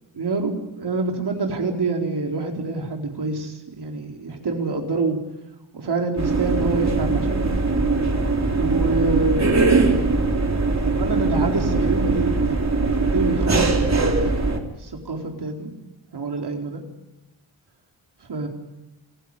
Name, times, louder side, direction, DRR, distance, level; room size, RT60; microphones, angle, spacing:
voice 1, 0.1-5.2 5.7-7.5 8.5-9.7 10.8-12.6 13.1-15.7 16.1-16.8 18.3-18.5, right 3 dB, 55° right, 2 dB, 4.2 m, -26 dB
sound 1, 6.2-14.6, right 3 dB, 35° right, 3.5 m, -21 dB
27.0 x 16.0 x 9.8 m, 1.0 s
cardioid pair, 95°, 47 cm